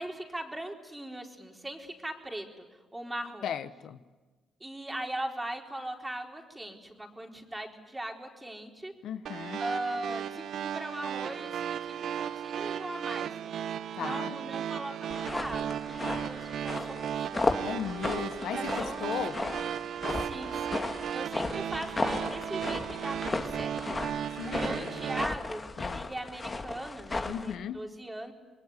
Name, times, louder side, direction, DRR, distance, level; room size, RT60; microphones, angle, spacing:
voice 1, 0.0-3.5 4.6-8.9 9.6-13.3 14.0-17.6 18.4-19.4 20.1-24.0 24.4-25.6 25.9-28.3, right 1 dB, 10° right, 2 dB, 4.3 m, -39 dB
voice 2, 3.4-4.0 9.0-9.6 13.9-14.4 17.6-19.3 24.3-25.2 25.8-26.1 27.2-27.8, left 9 dB, 75° left, 11 dB, 1.1 m, -36 dB
sound 1, 9.3-25.3, right 9 dB, 65° right, 1.0 m, -35 dB
sound 2, 15.1-27.5, left 3 dB, 25° left, 2.2 m, -35 dB
27.5 x 21.5 x 9.8 m, 1.3 s
cardioid pair, 90°, 0 cm